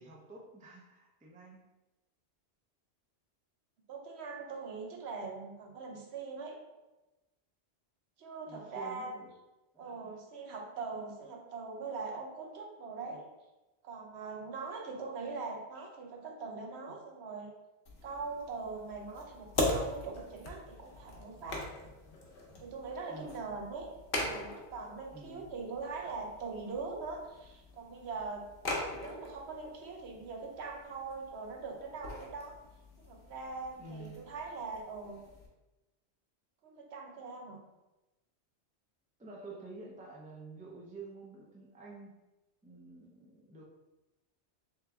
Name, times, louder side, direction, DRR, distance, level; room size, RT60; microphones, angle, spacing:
voice 1, 0.0-1.6 8.5-9.3 9.7-10.1 10.9-11.0 23.1-23.5 25.1-25.5 33.8-34.2 39.2-42.1 42.6-43.6, right 3 dB, 10° right, -2 dB, 0.4 m, -49 dB
voice 2, 3.9-6.6 8.2-9.1 9.8-13.3 13.8-17.5 18.0-21.6 22.6-28.5 28.9-32.6 33.0-35.2 36.6-37.6, right 4 dB, 70° right, 1 dB, 0.9 m, -42 dB
sound 1, 17.9-35.5, left 2 dB, 60° left, 0.9 m, -41 dB
3.5 x 3.2 x 3.3 m, 1.0 s
omnidirectional pair, 1.1 m